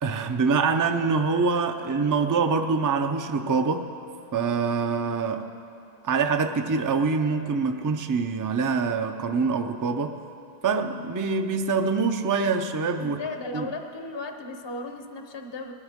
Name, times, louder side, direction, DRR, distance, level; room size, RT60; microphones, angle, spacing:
voice 1, 0.0-3.9 4.3-5.5 6.0-10.2 10.6-13.2 13.5-13.7, right 4 dB, 30° right, 7 dB, 0.4 m, -25 dB
voice 2, 13.0-15.7, left 3 dB, 30° left, 5 dB, 0.6 m, -35 dB
20.0 x 13.0 x 3.6 m, 2.6 s
omnidirectional pair, 1.1 m